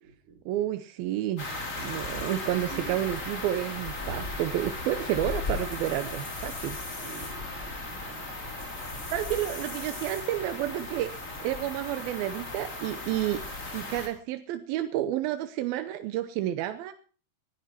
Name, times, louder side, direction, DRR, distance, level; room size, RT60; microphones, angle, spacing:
voice 1, 0.5-1.5 1.8-6.8 9.1-13.4 13.7-16.9, right 13 dB, 90° right, 10 dB, 2.7 m, -30 dB
sound 1, 1.4-14.1, left 2 dB, 25° left, 2.9 m, -36 dB
voice 2, 4.0-4.3 7.0-8.3, right 6 dB, 55° right, 2 dB, 4.8 m, -45 dB
19.0 x 12.0 x 4.4 m, 0.41 s
omnidirectional pair, 4.1 m